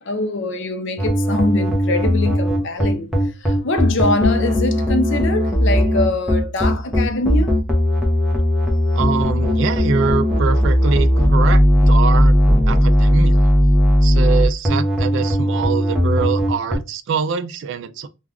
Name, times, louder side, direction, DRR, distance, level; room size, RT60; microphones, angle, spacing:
voice 1, 0.0-7.6, left 2 dB, 60° left, 0.5 m, -23 dB
sound 1, 1.0-16.8, equal, ahead, 0.6 m, -17 dB
voice 2, 8.9-12.4 12.7-13.5 14.0-18.1, right 5 dB, 60° right, 0.3 m, -24 dB
2.4 x 2.3 x 3.3 m
head